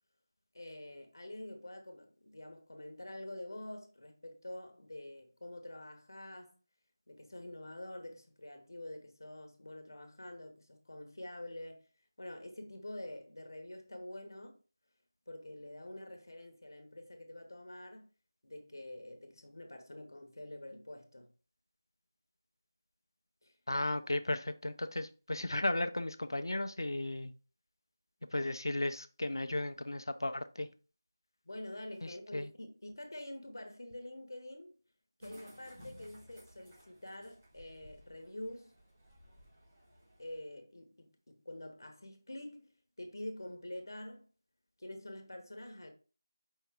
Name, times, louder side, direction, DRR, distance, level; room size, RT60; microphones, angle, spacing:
voice 1, 0.5-6.6 7.1-11.9 12.2-14.6 15.3-18.1 18.4-21.3 23.4-23.5 31.4-34.8 35.2-38.7 40.2-44.3 44.8-45.9, left 1 dB, 60° left, 1.0 m, -47 dB
voice 2, 23.7-27.3 28.3-30.7 32.0-32.5, left 1 dB, 80° left, 0.6 m, -35 dB
sound 1, 35.2-40.4, equal, 20° right, 1.5 m, -58 dB
5.6 x 2.7 x 3.4 m
figure-of-eight pair, 175°, 2 cm